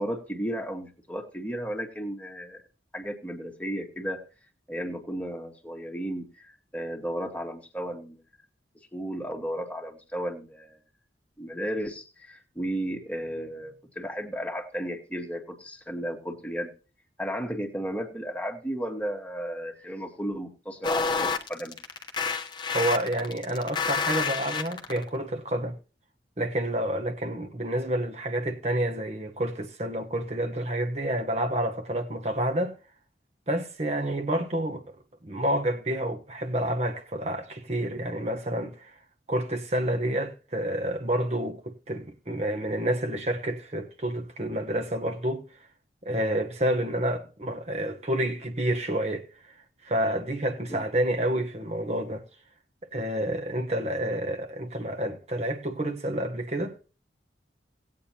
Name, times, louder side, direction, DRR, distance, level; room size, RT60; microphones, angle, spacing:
voice 1, 0.0-2.6 2.9-4.2 4.7-8.2 8.9-10.8 11.4-16.7 17.2-21.7 50.7-50.8, equal, 10° left, 1.5 m, -34 dB
sound 1, 20.8-25.0, left 5 dB, 25° left, 0.9 m, -28 dB
voice 2, 22.7-25.8 26.4-32.7 33.5-35.0 35.2-39.0 39.3-45.4 46.0-49.5 49.8-52.3 52.9-56.8, right 1 dB, 35° right, 1.0 m, -29 dB
18.0 x 8.5 x 2.8 m
head